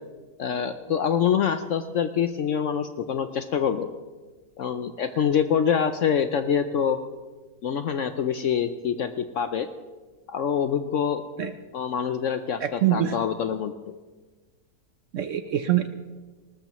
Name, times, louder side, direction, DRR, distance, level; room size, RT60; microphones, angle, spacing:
voice 1, 0.4-3.9 4.6-7.0 7.6-9.7 10.3-11.2 11.7-13.9, left 7 dB, 65° left, 9 dB, 0.8 m, -25 dB
voice 2, 12.6-13.2 15.1-15.9, right 12 dB, 60° right, 9 dB, 0.8 m, -24 dB
19.5 x 19.0 x 3.0 m, 1.3 s
omnidirectional pair, 1.8 m